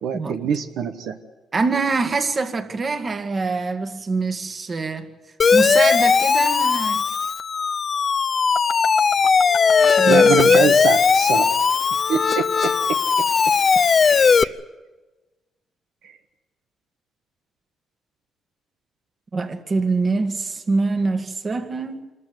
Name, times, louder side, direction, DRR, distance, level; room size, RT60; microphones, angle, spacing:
voice 1, 0.0-1.2 10.1-11.5 12.1-13.0 14.0-14.5 16.0-16.1, right 7 dB, 80° right, 1.1 m, -25 dB
voice 2, 1.5-5.1 5.5-7.0 10.0-10.7 19.3-22.0, right 3 dB, 35° right, 1.8 m, -24 dB
Siren, 5.4-14.4, left 5 dB, 45° left, 0.6 m, -18 dB
26.5 x 14.0 x 9.6 m
cardioid pair, 90°, 0 cm